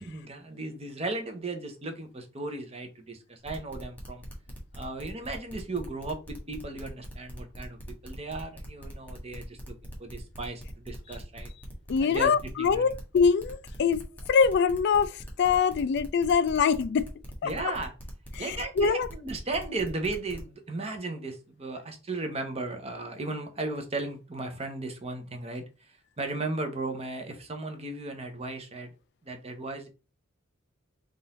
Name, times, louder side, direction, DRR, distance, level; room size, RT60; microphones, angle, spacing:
voice 1, 0.0-4.2 4.7-7.8 8.0-11.5 12.0-12.9 17.4-17.9 18.4-25.9 26.2-28.9 29.2-29.9, right 2 dB, 30° right, 0.8 m, -36 dB
sound 1, 3.4-20.4, equal, 10° left, 1.4 m, -44 dB
voice 2, 11.9-14.0 14.3-17.0 17.4-17.5 18.4-19.1, left 6 dB, 55° left, 0.3 m, -24 dB
3.8 x 2.5 x 4.0 m
head